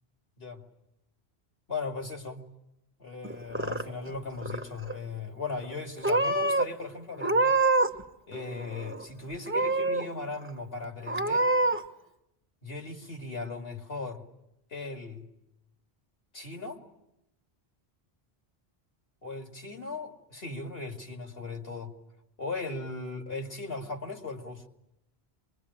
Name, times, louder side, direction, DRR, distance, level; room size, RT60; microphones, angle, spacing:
voice 1, 1.7-2.5 3.0-7.6 8.3-11.5 12.6-14.2 14.7-15.3 16.3-16.8 19.2-21.9 22.4-24.7, left 3 dB, 70° left, 3 dB, 2.7 m, -38 dB
Purr / Meow, 3.2-4.1 4.4-5.0 5.6-5.8 6.0-6.7 7.2-8.0 8.3-9.0 9.5-10.1 10.5-10.6 11.1-11.8, right 2 dB, 10° right, 1.0 m, -26 dB
25.0 x 21.5 x 10.0 m, 0.87 s
omnidirectional pair, 1.0 m